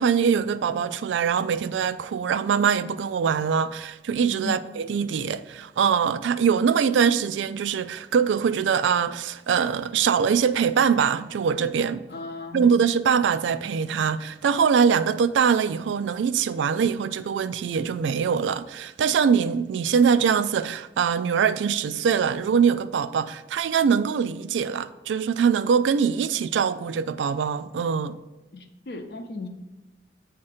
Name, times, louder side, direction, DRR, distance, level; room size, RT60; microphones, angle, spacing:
voice 1, 0.0-12.0 12.5-28.2, right 6 dB, 90° right, 0.3 m, -23 dB
voice 2, 12.1-12.7 28.5-29.5, left 3 dB, 60° left, 0.6 m, -35 dB
8.6 x 2.9 x 4.9 m
head